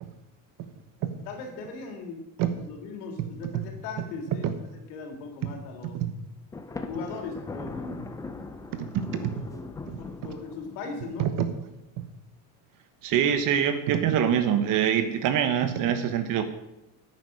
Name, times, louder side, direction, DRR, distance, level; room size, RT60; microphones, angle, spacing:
voice 1, 1.3-2.2 2.6-4.5 4.9-6.0 6.9-8.1 9.2-9.7 10.0-11.3, left 4 dB, 85° left, 3 dB, 3.3 m, -38 dB
Thunder, 6.5-11.1, left 3 dB, 10° left, 0.5 m, -40 dB
voice 2, 8.7-9.3 9.9-10.0 11.2-11.3 13.0-16.4, right 9 dB, 45° right, 10 dB, 1.3 m, -25 dB
10.5 x 9.0 x 6.5 m, 0.92 s
cardioid pair, 170°, 46 cm